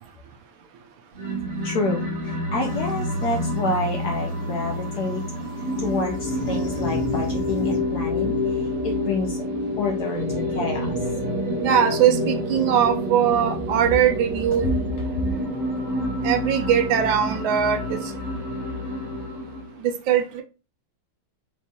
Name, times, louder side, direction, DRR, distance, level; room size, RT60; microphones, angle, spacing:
sound 1, 1.1-19.7, left 1 dB, 45° right, 1.3 m, -28 dB
voice 1, 1.6-5.2 5.8-9.5 9.8-10.9, left 3 dB, 70° left, 1.0 m, -29 dB
sound 2, 2.6-7.8, right 2 dB, 40° left, 1.3 m, -43 dB
voice 2, 11.6-14.7 16.2-18.1 19.8-20.4, right 9 dB, 75° right, 1.3 m, -21 dB
4.5 x 3.2 x 2.7 m
omnidirectional pair, 2.3 m